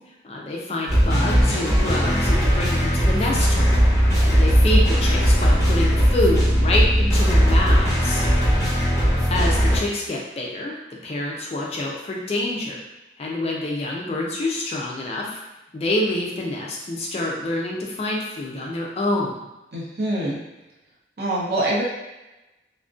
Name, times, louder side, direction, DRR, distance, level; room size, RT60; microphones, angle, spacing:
voice 1, 0.2-3.8 4.2-8.2 8.6-9.0 9.3-12.8 13.2-15.4 15.7-19.4, left 1 dB, 35° left, -2 dB, 0.3 m, -27 dB
sound 1, 0.9-9.8, equal, 15° left, 1.1 m, -18 dB
voice 2, 19.7-20.4 21.2-21.8, right 1 dB, 60° right, -5 dB, 0.7 m, -25 dB
2.4 x 2.1 x 2.4 m, 1.0 s
head